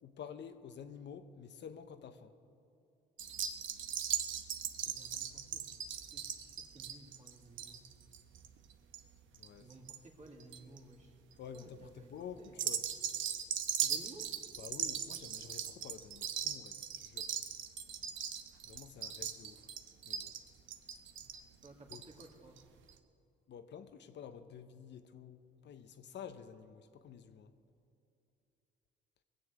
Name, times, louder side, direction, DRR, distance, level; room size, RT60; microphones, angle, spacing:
voice 1, 0.0-2.3 9.3-9.8 11.4-12.9 14.6-17.3 18.6-19.7 20.0-20.4 21.9-22.0 23.5-27.5, left 7 dB, 60° left, 0.8 m, -50 dB
sound 1, 3.2-10.0 10.3-10.8 11.3-11.6 12.5-22.3 22.6-22.7 22.9-23.0, right 9 dB, 75° right, 1.0 m, -39 dB
voice 2, 4.8-7.8 9.6-11.2 11.5-12.6 13.8-14.3 21.6-22.7, right 2 dB, 35° right, 2.3 m, -56 dB
20.5 x 7.0 x 8.2 m
cardioid pair, 90°, 20 cm